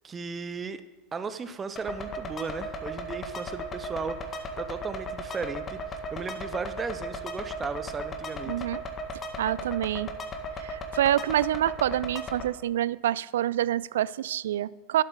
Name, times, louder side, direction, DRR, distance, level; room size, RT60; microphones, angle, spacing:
voice 1, 0.0-0.8 1.1-8.7, right 5 dB, 20° right, 11 dB, 1.0 m, -36 dB
sound 1, 1.8-12.4, equal, 25° left, 1.7 m, -36 dB
voice 2, 8.5-8.8 9.4-10.1 10.6-15.0, right 12 dB, 65° right, 21 dB, 0.3 m, -27 dB
12.0 x 12.0 x 3.8 m, 1.1 s
figure-of-eight pair, 85°, 0 cm